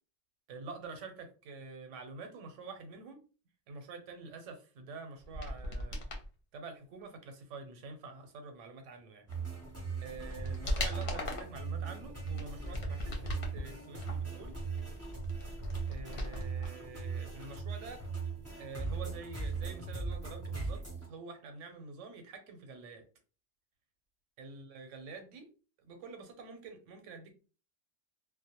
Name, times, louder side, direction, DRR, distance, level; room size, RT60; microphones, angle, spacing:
voice 1, 0.5-3.2 3.7-6.1 6.5-9.2 10.0-14.6 15.9-18.0 18.6-23.0 24.4-25.5 25.8-27.5, right 4 dB, 85° right, 7 dB, 0.9 m, -47 dB
sound 1, 5.2-6.3 9.3-9.4 9.9-11.6 12.1-13.6 14.0-16.7 17.0-17.1, left 1 dB, 60° left, 0.7 m, -38 dB
sound 2, 9.3-21.1, right 5 dB, 20° right, 0.5 m, -39 dB
2.1 x 2.0 x 2.8 m, 0.35 s
omnidirectional pair, 1.2 m